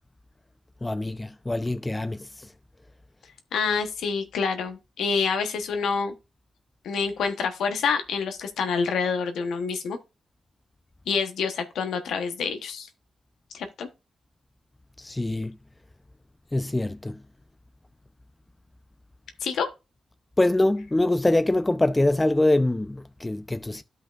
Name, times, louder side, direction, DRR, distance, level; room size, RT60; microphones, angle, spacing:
voice 1, 0.8-2.3 15.0-15.6 16.5-17.2 20.4-23.8, left 2 dB, 20° left, 0.7 m, -24 dB
voice 2, 3.5-6.1 6.8-10.0 11.1-12.9 13.5-13.9 19.4-19.7, left 5 dB, 80° left, 1.0 m, -27 dB
12.5 x 5.3 x 2.5 m
supercardioid pair, 45°, 0 cm